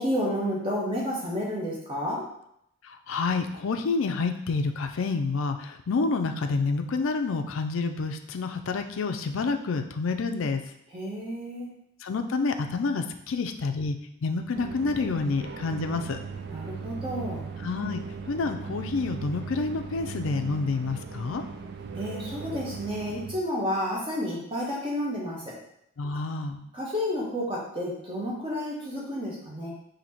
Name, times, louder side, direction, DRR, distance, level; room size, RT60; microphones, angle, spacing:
voice 1, 0.0-2.3 10.9-11.7 16.5-17.4 21.9-25.4 26.7-29.7, equal, 25° right, -5 dB, 1.1 m, -31 dB
voice 2, 2.9-10.6 12.0-16.2 17.6-18.0 18.3-21.4 26.0-26.6, left 4 dB, 65° left, 6 dB, 0.4 m, -28 dB
sound 1, 14.5-23.4, right 5 dB, 50° right, 0.3 m, -38 dB
4.4 x 2.8 x 4.1 m, 0.74 s
head